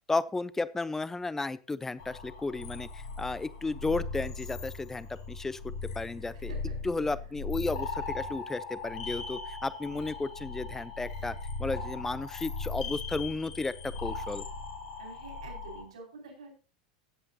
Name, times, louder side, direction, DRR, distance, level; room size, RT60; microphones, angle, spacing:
voice 1, 0.1-6.5 6.8-11.3 11.6-14.4, left 3 dB, 10° left, 17 dB, 0.7 m, -33 dB
sound 1, 2.0-15.8, left 3 dB, 65° left, 2.3 m, -39 dB
voice 2, 6.3-6.8 15.0-16.5, right 3 dB, 75° right, 2 dB, 5.1 m, -47 dB
16.5 x 8.0 x 2.9 m, 0.34 s
figure-of-eight pair, 85°, 3 cm